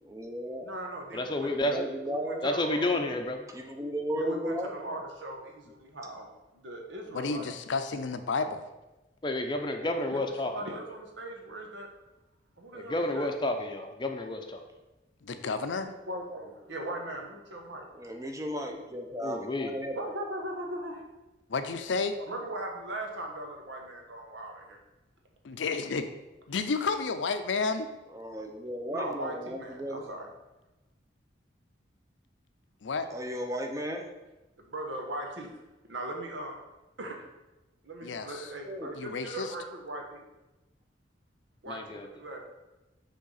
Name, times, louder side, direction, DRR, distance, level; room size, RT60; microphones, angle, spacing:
voice 1, 0.0-0.7 1.5-2.4 3.5-4.7 17.9-19.9 28.1-30.1 33.1-34.1 38.7-38.9, equal, 15° right, 3 dB, 0.7 m, -35 dB
voice 2, 0.6-2.9 4.2-6.3 6.5-7.5 10.4-11.9 12.6-13.3 15.7-17.8 19.9-21.0 22.2-24.8 28.9-30.3 34.6-35.6 35.9-36.6 37.0-37.1 37.8-40.2 41.6-42.4, right 1 dB, 85° right, 1 dB, 1.2 m, -39 dB
voice 3, 1.1-1.9 2.4-3.5 9.2-10.5 12.7-14.6 19.2-19.7 41.7-42.1, left 1 dB, 25° left, 5 dB, 0.6 m, -30 dB
voice 4, 7.1-8.7 15.2-15.9 21.5-22.2 25.4-26.1 26.5-27.9 32.8-33.1 38.0-38.5 38.9-39.5, left 4 dB, 85° left, 9 dB, 0.5 m, -31 dB
6.3 x 3.6 x 5.6 m, 1.0 s
head